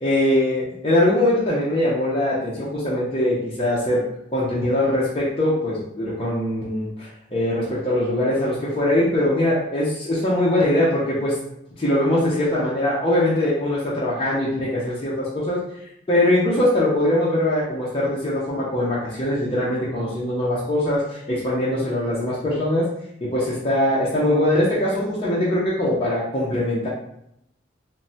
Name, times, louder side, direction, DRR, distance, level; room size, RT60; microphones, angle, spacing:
voice 1, 0.0-4.1 4.3-11.4 11.8-15.6 16.1-22.9 23.2-26.9, left 1 dB, 30° left, -7 dB, 0.5 m, -22 dB
3.1 x 2.0 x 2.7 m, 0.77 s
head